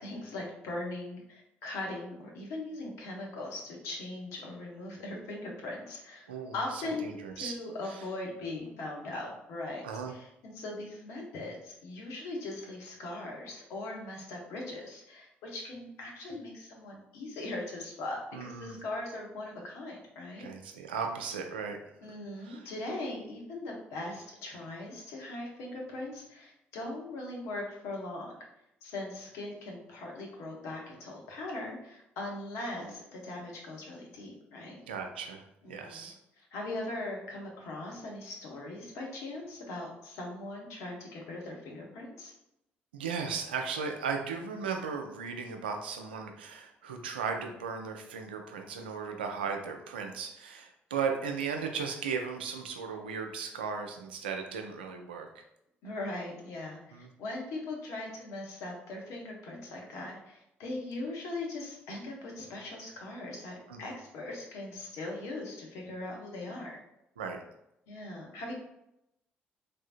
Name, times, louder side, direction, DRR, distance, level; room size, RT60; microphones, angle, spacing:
voice 1, 0.0-20.5 22.0-28.3 28.8-34.8 35.6-36.1 36.4-42.3 55.8-66.7 67.9-68.5, left 2 dB, 70° left, -1 dB, 0.8 m, -40 dB
voice 2, 6.3-7.5 7.8-8.0 9.8-10.1 18.3-18.8 20.4-21.8 22.4-22.7 34.9-36.2 42.9-55.3 56.9-57.1 63.7-63.9 67.2-67.4, right 5 dB, 85° right, 4 dB, 0.3 m, -36 dB
3.2 x 2.7 x 2.4 m, 0.84 s
hypercardioid pair, 45°, 5 cm